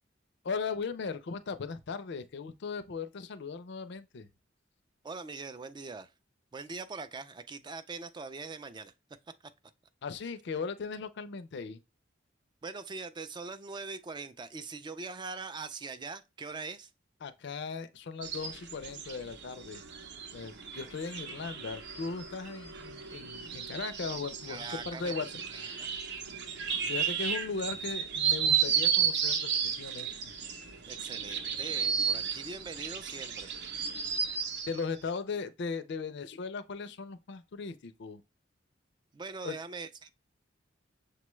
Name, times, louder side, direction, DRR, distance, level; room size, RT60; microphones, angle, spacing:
voice 1, 0.4-4.3 10.0-11.8 17.2-19.8 20.3-25.3 25.6-26.0 26.6-30.1 34.7-38.2 39.4-39.6, left 4 dB, 65° left, 0.5 m, -38 dB
voice 2, 5.0-6.1 6.5-8.9 12.6-16.9 24.5-25.9 30.9-33.5 39.1-40.1, right 4 dB, 25° right, 0.3 m, -42 dB
sound 1, 18.2-34.8, right 7 dB, 65° right, 0.7 m, -33 dB
6.6 x 2.2 x 3.1 m
head